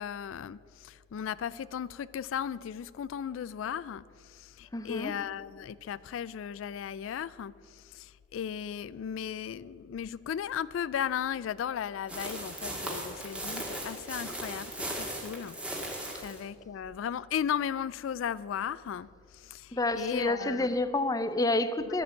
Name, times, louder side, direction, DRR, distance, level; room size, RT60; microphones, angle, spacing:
voice 1, 0.0-19.1 19.3-20.7, left 8 dB, 75° left, 0.3 m, -36 dB
voice 2, 4.7-5.1 16.1-16.3 19.7-22.0, left 2 dB, 20° left, 0.6 m, -29 dB
sound 1, 12.1-16.4, right 1 dB, 5° right, 1.9 m, -37 dB
13.5 x 10.0 x 7.2 m
head